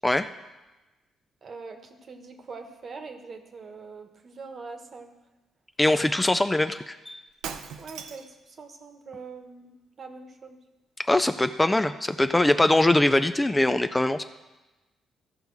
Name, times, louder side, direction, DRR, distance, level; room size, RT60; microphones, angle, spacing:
voice 1, 1.4-5.1 7.8-10.6, right 4 dB, 50° right, 6 dB, 1.2 m, -43 dB
voice 2, 5.8-7.2 11.1-14.2, left 1 dB, 15° left, 10 dB, 0.4 m, -22 dB
Shatter, 7.3-8.4, right 7 dB, 90° right, 0.6 m, -38 dB
14.0 x 5.3 x 4.7 m, 1.1 s
cardioid pair, 90°, 0 cm